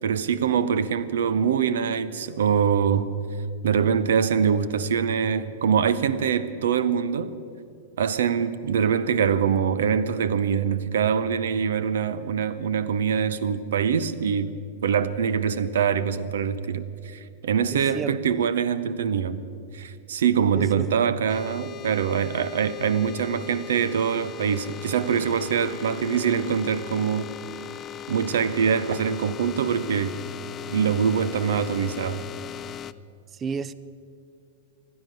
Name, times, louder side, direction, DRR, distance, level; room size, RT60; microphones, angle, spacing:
voice 1, 0.0-3.1 3.6-7.3 8.0-14.5 14.8-19.4 19.7-27.3 28.1-30.2 30.7-32.2, right 7 dB, 65° right, 0.7 m, -24 dB
voice 2, 17.7-18.4 20.5-20.9 33.3-33.7, right 5 dB, 25° right, 0.5 m, -32 dB
sound 1, 21.3-32.9, left 10 dB, 25° left, 0.4 m, -38 dB
15.5 x 12.0 x 7.7 m
figure-of-eight pair, 95°, 0 cm